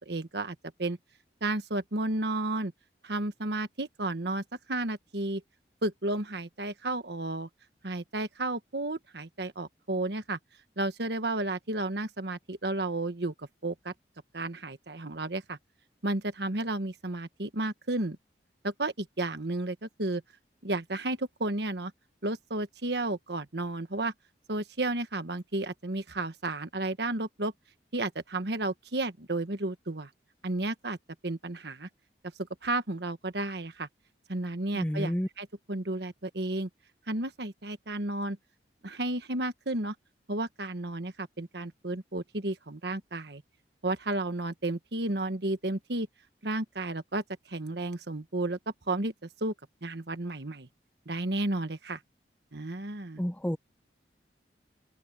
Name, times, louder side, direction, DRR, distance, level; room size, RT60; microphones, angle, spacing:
voice 1, 0.1-1.0 1.4-2.7 3.0-5.4 5.8-7.5 7.8-10.4 10.8-13.9 14.3-15.6 16.0-18.2 18.6-20.2 20.6-21.9 22.2-24.1 24.5-27.5 27.9-30.1 30.4-31.0 31.2-31.9 32.6-33.9 34.3-36.7 37.1-38.4 38.8-39.9 40.3-43.4 43.8-46.1 46.4-48.6 48.9-49.1 49.4-49.5 49.8-50.7 51.1-52.0 52.5-53.2, right 2 dB, 65° right, 1.4 m, -32 dB
voice 2, 34.7-35.3 53.2-53.6, equal, 10° left, 0.8 m, -29 dB
head